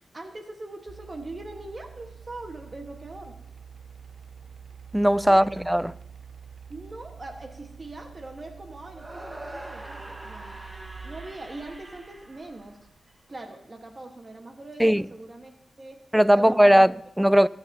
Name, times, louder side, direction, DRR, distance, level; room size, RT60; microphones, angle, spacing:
voice 1, 0.1-3.3 5.3-5.5 6.7-10.6 11.0-12.8 13.3-16.0 16.3-16.8, right 2 dB, 40° right, 1.4 m, -41 dB
sound 1, 0.9-13.2, right 7 dB, 80° right, 0.5 m, -47 dB
voice 2, 4.9-5.9 14.8-15.1 16.1-17.5, equal, 5° right, 0.4 m, -18 dB
sound 2, 8.9-13.1, right 1 dB, 25° right, 1.4 m, -43 dB
20.0 x 9.0 x 2.8 m
cardioid pair, 50°, 0 cm